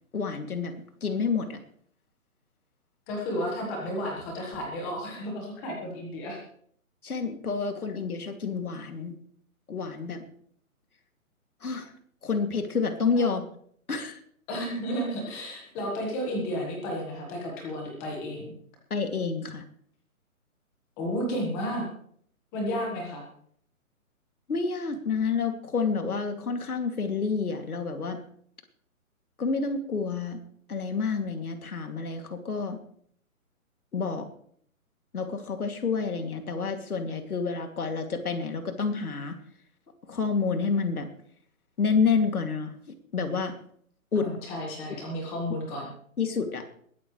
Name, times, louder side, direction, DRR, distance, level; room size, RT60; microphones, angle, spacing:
voice 1, 0.1-1.6 7.0-9.2 9.7-10.2 11.6-11.9 12.2-13.5 13.9-14.2 18.9-19.6 24.5-28.2 29.4-30.4 30.7-32.8 33.9-34.3 35.1-39.4 40.1-41.1 41.8-43.6 44.1-44.3 46.2-46.7, left 5 dB, 90° left, 5 dB, 2.7 m, -29 dB
voice 2, 3.1-6.4 13.2-13.3 14.5-18.5 21.0-21.9 22.5-23.2 44.1-45.9, equal, 5° left, 0 dB, 1.4 m, -32 dB
21.5 x 12.0 x 3.2 m, 0.62 s
hypercardioid pair, 175°, 43 cm